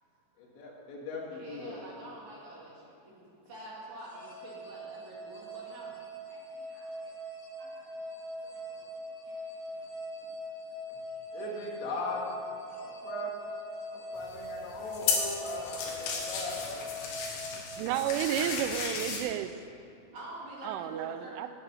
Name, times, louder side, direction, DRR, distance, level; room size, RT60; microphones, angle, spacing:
voice 1, 0.4-1.8 11.3-12.2 12.8-13.3 13.9-16.9, left 2 dB, 70° left, -2 dB, 4.0 m, -39 dB
voice 2, 1.3-5.9 6.3-10.6 13.9-14.7 20.1-21.5, right 2 dB, 45° right, -5 dB, 3.0 m, -48 dB
sound 1, 4.0-18.4, left 1 dB, 45° left, 2.4 m, -42 dB
sound 2, 14.2-19.2, left 5 dB, 85° left, 4.3 m, -34 dB
voice 3, 17.5-19.5 20.6-21.5, right 11 dB, 85° right, 10 dB, 3.0 m, -32 dB
19.0 x 9.0 x 5.6 m, 2.6 s
omnidirectional pair, 5.6 m